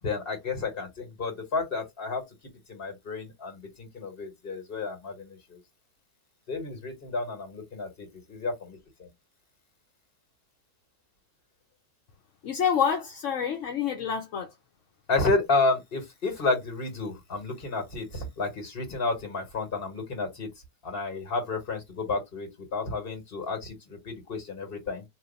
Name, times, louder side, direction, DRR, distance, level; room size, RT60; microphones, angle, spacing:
voice 1, 0.0-2.2 2.7-5.6 6.5-9.1 15.1-20.5 20.8-25.0, left 3 dB, 35° left, 1.6 m, -31 dB
voice 2, 12.4-14.5, left 7 dB, 60° left, 0.9 m, -27 dB
2.8 x 2.7 x 3.9 m
omnidirectional pair, 1.8 m